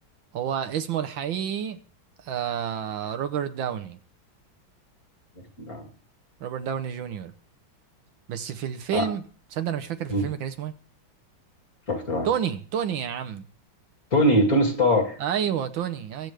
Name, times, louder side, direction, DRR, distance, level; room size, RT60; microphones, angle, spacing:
voice 1, 0.3-1.8 2.2-4.0 6.4-7.3 8.3-9.2 9.5-10.7 12.2-13.5 15.2-16.3, right 9 dB, 70° right, 7 dB, 1.6 m, -29 dB
voice 2, 11.9-12.3 14.1-15.2, equal, 45° left, 2 dB, 3.0 m, -22 dB
21.5 x 8.1 x 3.4 m, 0.42 s
omnidirectional pair, 2.3 m